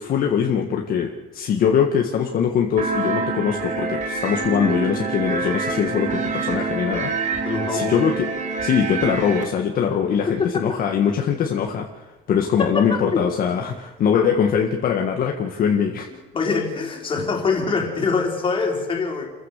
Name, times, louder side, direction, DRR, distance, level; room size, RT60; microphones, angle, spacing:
voice 1, 0.0-7.1 7.7-8.3 8.6-16.1, left 7 dB, 50° left, 2 dB, 1.8 m, -22 dB
sound 1, 2.8-9.4, right 4 dB, 40° right, 3.1 m, -26 dB
voice 2, 7.4-8.0 10.3-10.5 12.7-13.3 16.3-19.3, left 4 dB, 30° left, 1 dB, 4.2 m, -24 dB
29.0 x 15.5 x 6.7 m, 1.1 s
cardioid pair, 160°, 19 cm